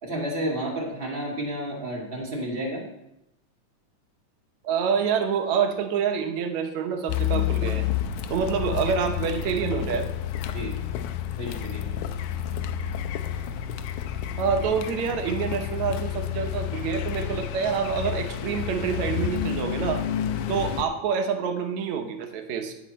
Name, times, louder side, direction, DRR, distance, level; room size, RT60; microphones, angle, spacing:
voice 1, 0.0-2.8 10.5-10.7 11.4-11.9, right 1 dB, 20° right, -2 dB, 1.7 m, -31 dB
voice 2, 4.6-7.9 8.3-10.1 14.4-20.1 20.5-22.7, right 6 dB, 70° right, 6 dB, 2.2 m, -27 dB
Car, 7.1-20.8, left 10 dB, 85° left, 2.1 m, -30 dB
17.5 x 6.0 x 4.2 m, 0.88 s
omnidirectional pair, 3.5 m